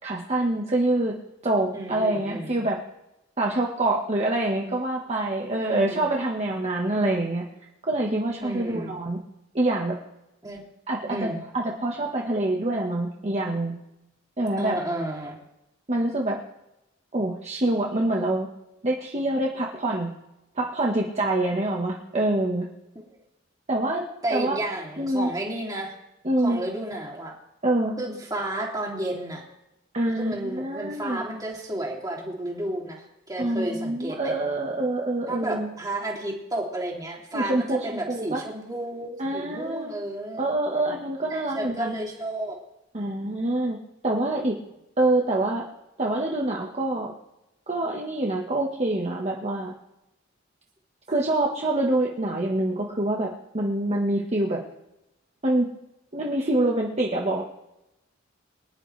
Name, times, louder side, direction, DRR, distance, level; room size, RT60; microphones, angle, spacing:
voice 1, 0.0-1.1 1.4-2.8 3.4-7.4 7.8-9.2 9.5-10.0 10.9-13.8 14.4-14.8 15.9-16.4 17.1-18.5 18.8-20.1 20.6-22.7 23.7-24.6 25.0-25.3 26.2-26.6 27.6-27.9 29.9-31.2 33.4-35.7 37.3-38.4 39.2-39.9 40.4-41.9 42.9-43.8 44.0-44.5 45.0-45.6 46.0-47.1 47.7-49.7 51.1-54.6 55.4-55.7 56.1-57.4, right 1 dB, 35° right, -1 dB, 1.4 m, -26 dB
voice 2, 1.7-2.6 5.6-6.0 8.4-8.9 10.4-10.6 11.1-11.4 14.6-15.3 23.1-23.2 24.2-25.9 26.4-27.3 28.0-29.4 30.2-34.3 35.3-40.5 41.3-42.6, right 1 dB, 20° right, -2 dB, 2.9 m, -32 dB
24.0 x 11.0 x 3.4 m, 0.91 s
head